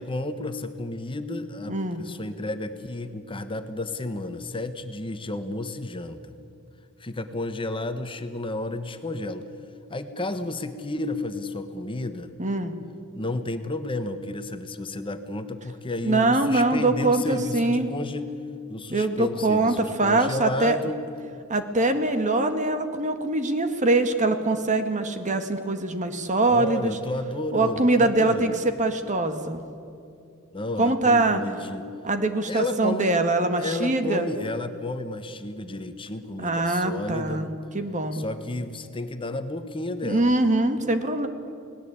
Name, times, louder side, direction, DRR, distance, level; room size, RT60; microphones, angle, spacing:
voice 1, 0.0-6.3 7.0-9.4 9.9-12.3 13.1-18.4 18.7-21.0 26.4-28.6 30.5-31.9 32.5-33.1 33.6-37.5 38.1-40.3, left 2 dB, 25° left, 9 dB, 1.2 m, -32 dB
voice 2, 1.7-2.0 12.4-12.7 16.0-17.9 18.9-20.8 21.5-27.0 27.5-28.5 28.8-29.6 30.8-31.4 32.0-34.3 36.4-37.5 37.7-38.2 40.0-41.3, right 2 dB, 35° right, 8 dB, 1.8 m, -23 dB
29.5 x 19.0 x 8.7 m, 2.5 s
head